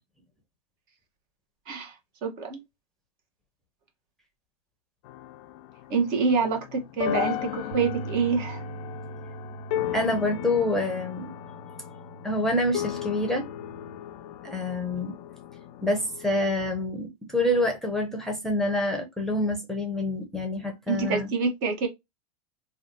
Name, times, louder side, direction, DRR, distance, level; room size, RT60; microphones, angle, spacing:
voice 1, 1.7-2.6 5.9-8.6 20.9-21.9, right 5 dB, 45° right, 1.1 m, -27 dB
sound 1, 5.0-16.7, left 11 dB, 55° left, 0.4 m, -36 dB
sound 2, 7.7-14.0, right 4 dB, 75° right, 0.6 m, -42 dB
voice 2, 9.9-11.3 12.2-13.4 14.4-15.2 15.8-21.3, left 1 dB, ahead, 0.7 m, -27 dB
3.3 x 2.3 x 2.6 m
hypercardioid pair, 110°, 20 cm